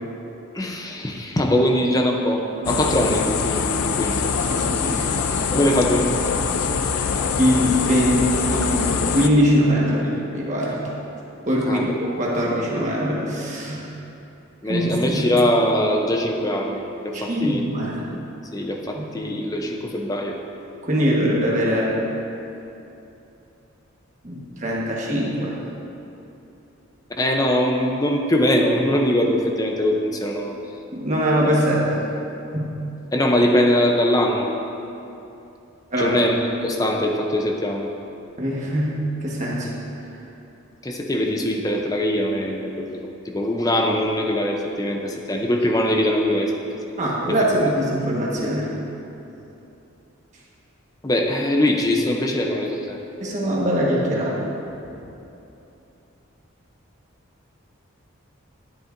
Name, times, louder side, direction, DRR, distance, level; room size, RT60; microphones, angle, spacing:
voice 1, 0.5-4.2 5.5-6.2 11.7-11.9 14.6-17.6 18.5-20.4 27.2-30.5 33.1-34.5 36.0-37.9 40.8-46.5 47.3-47.7 51.0-53.0, left 1 dB, 15° left, 2 dB, 0.5 m, -22 dB
sound 1, 2.7-9.3, left 6 dB, 85° left, 0.5 m, -23 dB
voice 2, 4.2-5.7 7.4-10.8 11.4-13.9 14.7-15.3 17.1-18.1 18.9-19.0 20.8-22.0 24.2-25.6 30.9-32.1 32.5-32.8 35.9-36.2 38.4-39.7 47.0-48.8 53.2-54.4 54.6-54.7, equal, 35° right, -4 dB, 1.3 m, -22 dB
10.5 x 9.8 x 2.6 m, 2.8 s
head